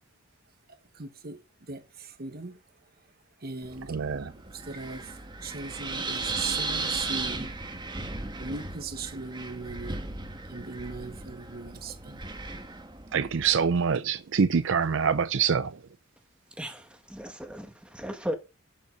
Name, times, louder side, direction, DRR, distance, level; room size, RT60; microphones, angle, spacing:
voice 1, 0.9-1.4 1.7-2.6 3.4-4.2 4.7-5.1 5.4-7.5 8.4-10.0 10.5-12.2, right 3 dB, 45° right, 1.2 m, -39 dB
Wind, 3.6-13.7, right 3 dB, 20° right, 1.4 m, -36 dB
voice 2, 3.9-4.3 13.1-15.7, right 6 dB, 65° right, 0.5 m, -25 dB
voice 3, 16.6-18.3, equal, 5° right, 1.5 m, -36 dB
11.0 x 5.6 x 5.2 m
head